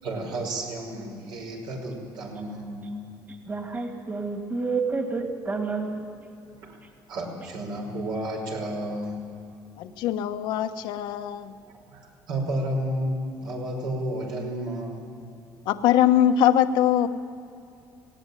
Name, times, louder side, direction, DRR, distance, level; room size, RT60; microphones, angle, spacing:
voice 1, 0.0-3.1 6.6-6.8 7.1-9.2 11.9-15.1, right 1 dB, 75° right, 1 dB, 5.7 m, -32 dB
voice 2, 3.3-6.3, right 4 dB, 25° right, 3 dB, 2.5 m, -30 dB
voice 3, 9.8-11.5 15.7-17.1, left 10 dB, 85° left, 7 dB, 1.1 m, -22 dB
18.5 x 17.5 x 9.9 m, 2.6 s
cardioid pair, 130°, 8 cm